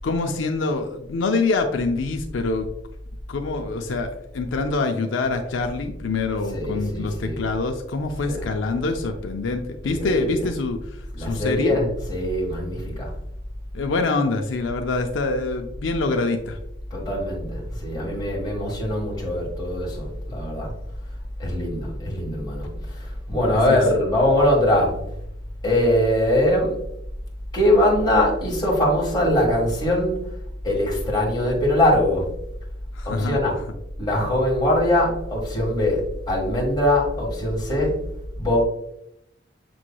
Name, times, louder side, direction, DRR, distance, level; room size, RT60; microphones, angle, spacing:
voice 1, 0.0-2.7 3.3-11.8 13.7-16.6 23.7-23.8 32.9-33.4, left 3 dB, 80° left, 5 dB, 0.5 m, -25 dB
voice 2, 6.5-7.4 8.2-8.5 9.8-10.5 11.2-13.1 16.9-20.7 21.4-25.0 25.6-26.8 27.5-30.2 30.6-32.3 33.0-33.6 34.0-38.0 38.4-38.6, left 1 dB, 25° left, -2 dB, 1.4 m, -22 dB
6.9 x 3.1 x 2.2 m, 0.78 s
head